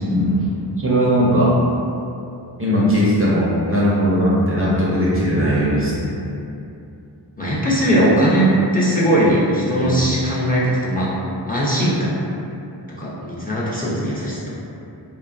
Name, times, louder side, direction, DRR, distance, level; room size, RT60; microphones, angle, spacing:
voice 1, 0.1-0.5 0.8-1.5 2.6-6.1 9.8-9.9, equal, 30° right, -7 dB, 0.5 m, -18 dB
voice 2, 7.4-8.5 8.7-11.1 11.5-12.2 12.9-14.5, equal, 20° left, -9 dB, 0.6 m, -19 dB
3.1 x 2.2 x 2.4 m, 2.7 s
wide cardioid pair, 55°, 45 cm